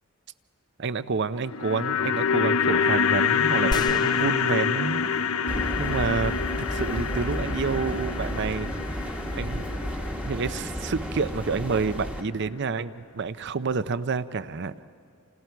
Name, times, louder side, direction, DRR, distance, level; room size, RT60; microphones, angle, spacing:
voice 1, 0.8-5.1 5.4-5.5 5.8-8.7 8.9-9.6 10.2-14.7, right 4 dB, 55° right, 14 dB, 0.6 m, -29 dB
sound 1, 1.3-11.6 11.9-12.0, left 6 dB, 75° left, 0.7 m, -27 dB
sound 2, 3.7-6.0, left 2 dB, 20° left, 0.6 m, -36 dB
sound 3, 5.5-12.2, equal, 5° right, 1.1 m, -32 dB
29.0 x 28.5 x 4.6 m, 2.4 s
head